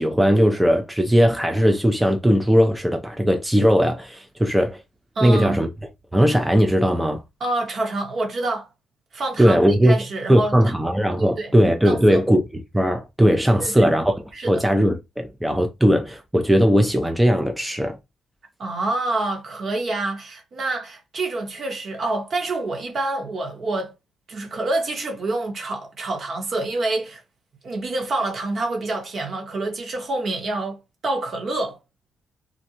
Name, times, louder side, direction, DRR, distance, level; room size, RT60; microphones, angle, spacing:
voice 1, 0.0-4.8 5.2-5.7 6.1-7.2 9.4-10.0 10.3-12.4 12.7-14.1 14.4-18.0, equal, 5° right, 0.4 m, -18 dB
voice 2, 5.1-5.6 7.4-8.7 9.1-10.5 11.1-11.5 11.9-12.2 13.6-13.9 14.3-14.6 18.6-23.9 24.3-27.2 27.6-31.8, right 2 dB, 50° right, 1.0 m, -27 dB
2.5 x 2.1 x 2.8 m
cardioid pair, 90°, 0 cm